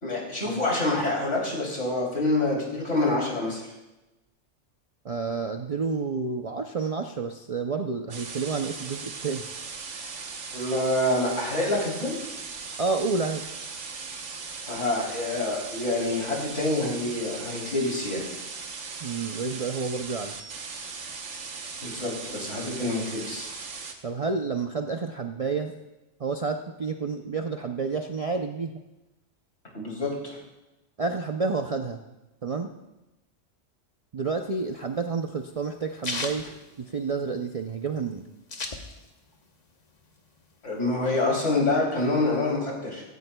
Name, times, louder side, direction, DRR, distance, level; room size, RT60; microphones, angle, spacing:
voice 1, 0.0-3.6 10.5-12.2 14.7-18.2 21.8-23.5 29.7-30.4 40.6-43.0, left 2 dB, 70° left, -3 dB, 3.6 m, -27 dB
voice 2, 5.0-9.4 12.8-13.4 19.0-20.4 24.0-25.7 26.2-28.8 31.0-32.0 32.4-32.7 34.1-36.4 36.8-38.3, right 4 dB, 45° right, 4 dB, 0.4 m, -29 dB
sound 1, 8.1-23.9, right 5 dB, 75° right, 1.4 m, -38 dB
sound 2, 34.3-37.5 37.8-37.9 38.1-39.3 39.7-40.8, left 3 dB, 35° left, 1.1 m, -36 dB
16.5 x 15.0 x 2.3 m, 1.0 s
omnidirectional pair, 1.3 m